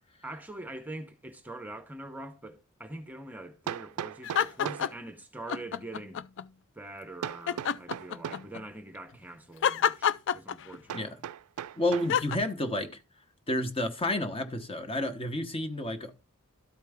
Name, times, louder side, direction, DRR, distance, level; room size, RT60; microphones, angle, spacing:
voice 1, 0.2-6.2 6.7-11.2, right 1 dB, 10° right, 0.8 m, -43 dB
Hammer, 3.7-5.0 7.2-8.5 10.9-12.2, right 9 dB, 85° right, 0.3 m, -38 dB
sound 1, 4.2-5.1 5.5-6.5 7.5-8.6 9.6-11.0 12.1-12.4, left 8 dB, 60° left, 0.4 m, -28 dB
voice 2, 11.8-13.0 13.5-16.2, left 1 dB, 25° left, 1.0 m, -30 dB
12.5 x 4.5 x 3.5 m
head